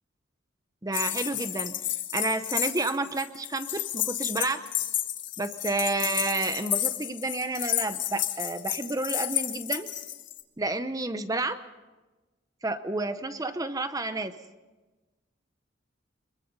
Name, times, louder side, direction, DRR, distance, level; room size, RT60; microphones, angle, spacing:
voice 1, 0.8-4.6 5.4-9.9 10.6-11.6 12.6-14.3, right 2 dB, 20° right, 10 dB, 0.8 m, -30 dB
sound 1, 0.9-10.4, left 13 dB, 65° left, 1.7 m, -31 dB
25.0 x 22.5 x 5.4 m, 1.2 s
head